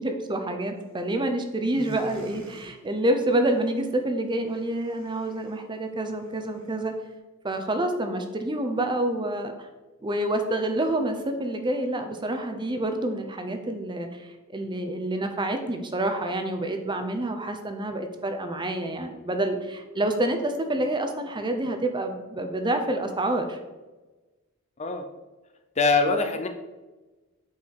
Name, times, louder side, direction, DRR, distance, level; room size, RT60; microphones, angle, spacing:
voice 1, 0.0-6.9 7.4-9.7 10.0-23.6, right 1 dB, 20° right, 6 dB, 0.8 m, -28 dB
sound 1, 0.8-1.3 1.6-7.1, right 1 dB, 65° right, 1.5 m, -48 dB
voice 2, 25.8-26.5, left 3 dB, 30° left, 7 dB, 0.6 m, -23 dB
8.3 x 4.8 x 4.7 m, 1.2 s
head